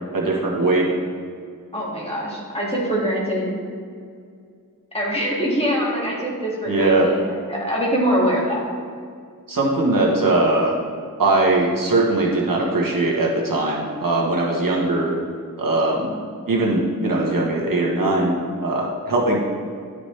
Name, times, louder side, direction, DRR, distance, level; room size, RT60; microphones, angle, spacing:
voice 1, 0.1-0.9 6.7-7.1 9.5-10.7 11.2-15.1 15.6-16.1 16.5-18.4 18.6-19.4, right 2 dB, 70° right, -3 dB, 1.4 m, -20 dB
voice 2, 1.7-3.5 4.9-8.6, equal, 15° left, -5 dB, 2.1 m, -23 dB
11.5 x 4.9 x 3.3 m, 2.2 s
wide cardioid pair, 70°, 35 cm